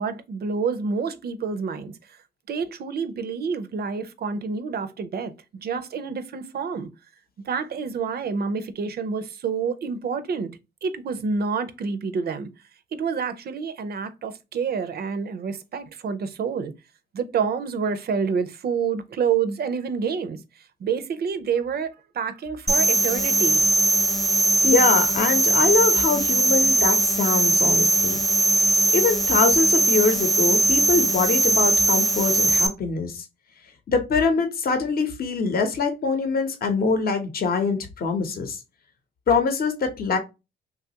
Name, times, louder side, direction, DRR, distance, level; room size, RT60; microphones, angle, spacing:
voice 1, 0.0-2.2 2.5-5.3 5.6-6.9 7.5-10.5 10.8-12.5 12.9-16.7 17.1-20.4 20.8-23.6, right 6 dB, 50° right, 0.5 m, -28 dB
sound 1, 22.7-32.7, right 2 dB, ahead, 0.6 m, -20 dB
voice 2, 24.6-28.2 28.9-33.2 33.9-38.6 39.3-40.2, left 4 dB, 50° left, 0.7 m, -23 dB
3.0 x 2.3 x 2.8 m
cardioid pair, 90°, 20 cm